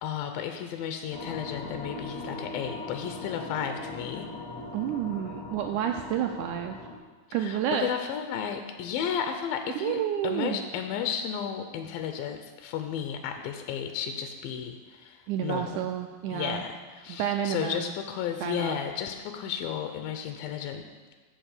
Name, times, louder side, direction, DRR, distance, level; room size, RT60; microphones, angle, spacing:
voice 1, 0.0-4.3 7.4-15.9 16.3-20.9, left 8 dB, 80° left, 6 dB, 2.5 m, -33 dB
sound 1, 1.1-6.9, left 2 dB, 15° left, 0.7 m, -40 dB
voice 2, 4.7-6.8 7.3-7.9 9.8-10.6 15.3-16.6 17.1-17.9 18.4-18.8, right 10 dB, 90° right, 4 dB, 1.8 m, -30 dB
15.5 x 5.4 x 6.5 m, 1.4 s
omnidirectional pair, 4.1 m